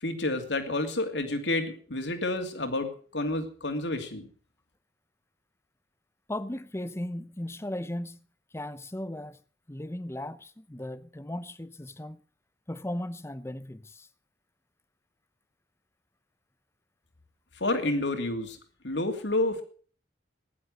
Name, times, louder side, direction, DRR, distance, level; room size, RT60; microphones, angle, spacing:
voice 1, 0.0-4.3 17.6-18.6 18.8-19.6, left 2 dB, 70° left, 2.8 m, -29 dB
voice 2, 6.3-8.2 8.5-9.4 9.7-12.2 12.7-14.1, left 1 dB, 15° left, 0.7 m, -36 dB
16.0 x 11.0 x 6.5 m
head